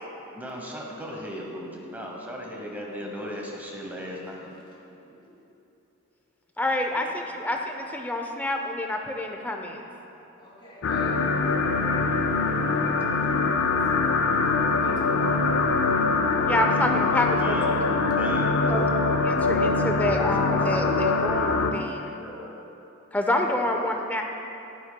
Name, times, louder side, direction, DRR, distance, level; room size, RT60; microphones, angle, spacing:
voice 1, 0.1-4.5 5.1-5.3 17.0-17.8 18.2-18.8 22.2-22.5 23.7-23.8, equal, 10° right, -1 dB, 1.0 m, -37 dB
voice 2, 6.6-9.8 16.5-17.6 18.7-22.1 23.1-24.2, left 1 dB, 10° left, 2 dB, 0.5 m, -28 dB
voice 3, 10.4-11.3 14.4-14.5 14.8-15.9, left 1 dB, 25° left, -5 dB, 1.8 m, -44 dB
sound 1, 10.8-21.7, left 3 dB, 60° left, 0.4 m, -23 dB
11.5 x 9.8 x 2.2 m, 2.9 s
head